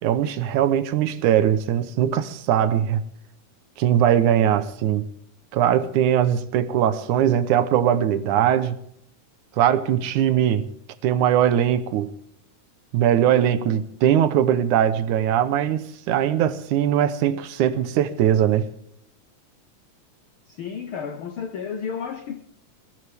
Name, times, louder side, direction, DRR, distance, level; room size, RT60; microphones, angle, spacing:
voice 1, 0.0-3.0 3.8-5.1 5.5-8.8 9.6-10.7 11.0-12.1 12.9-18.7, right 10 dB, 75° right, 2.3 m, -20 dB
voice 2, 20.5-22.4, left 6 dB, 80° left, 1.1 m, -32 dB
22.5 x 16.0 x 3.5 m
omnidirectional pair, 3.6 m